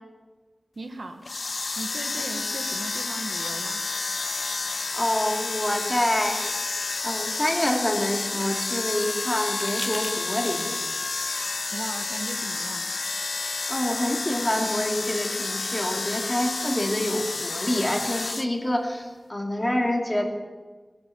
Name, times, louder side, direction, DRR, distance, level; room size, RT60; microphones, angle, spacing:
voice 1, 0.8-1.2 1.8-3.8 11.7-12.9, right 2 dB, 75° right, 5 dB, 1.5 m, -37 dB
sound 1, 1.2-18.5, left 3 dB, 75° left, 0.6 m, -30 dB
voice 2, 4.5-6.4 7.0-10.8 13.4-20.2, left 1 dB, 20° left, 2 dB, 2.4 m, -27 dB
sound 2, 6.3-8.5 9.4-10.9 12.6-12.7, equal, 10° right, 1.9 m, -41 dB
17.5 x 11.0 x 6.9 m, 1.3 s
wide cardioid pair, 65°, 0 cm